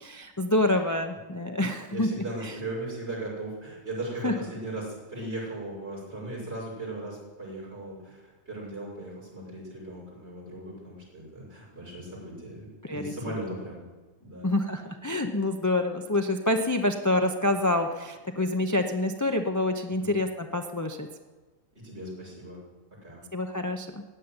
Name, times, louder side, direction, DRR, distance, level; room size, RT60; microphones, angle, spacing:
voice 1, 0.0-2.1 4.2-4.3 12.8-13.4 14.4-21.1 23.3-24.0, left 1 dB, 15° left, 5 dB, 0.7 m, -27 dB
voice 2, 1.9-13.8 14.2-14.5 20.0-20.2 21.8-22.6 23.0-23.2, right 1 dB, 50° right, -6 dB, 6.9 m, -38 dB
15.5 x 9.3 x 9.8 m, 1.3 s
omnidirectional pair, 1.4 m